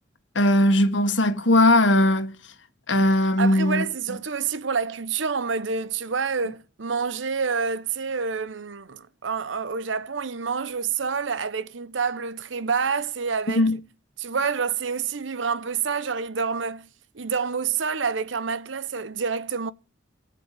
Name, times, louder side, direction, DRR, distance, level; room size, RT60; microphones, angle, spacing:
voice 1, 0.3-2.3 2.9-3.9 13.5-13.8, left 1 dB, 70° left, 1.7 m, -19 dB
voice 2, 3.4-13.7 14.2-16.9 17.1-19.7, right 5 dB, 75° right, 0.8 m, -28 dB
17.5 x 7.6 x 7.7 m
head